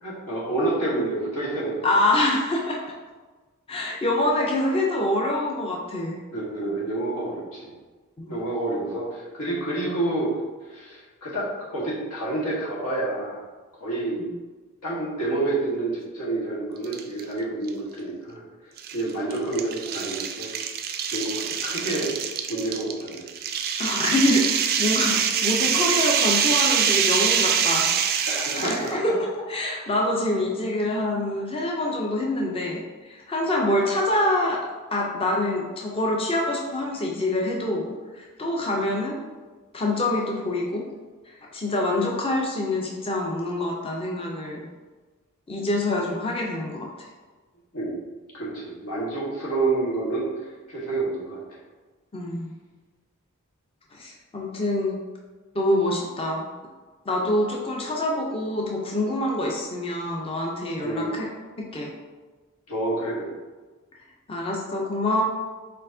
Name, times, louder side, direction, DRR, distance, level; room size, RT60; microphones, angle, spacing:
voice 1, 0.0-1.9 6.3-7.7 8.3-10.3 10.7-13.4 13.8-14.2 14.8-18.4 18.9-20.5 21.1-22.1 22.5-23.3 28.2-28.9 47.7-48.0 48.3-50.3 50.7-51.4 60.8-61.1 62.7-63.3, right 2 dB, 85° left, -5 dB, 1.4 m, -28 dB
voice 2, 1.8-2.9 3.7-6.2 8.2-8.3 14.1-14.3 23.8-29.2 29.5-34.6 34.9-39.2 39.7-40.8 41.5-44.7 45.5-46.9 52.1-52.5 53.9-55.0 55.5-56.5 57.1-61.3 61.7-61.9 64.3-65.2, left 1 dB, 25° left, -2 dB, 0.5 m, -25 dB
sound 1, 16.8-17.2 17.7-17.8 18.8-28.9, right 7 dB, 45° right, 0.3 m, -24 dB
4.4 x 4.2 x 2.6 m, 1.3 s
head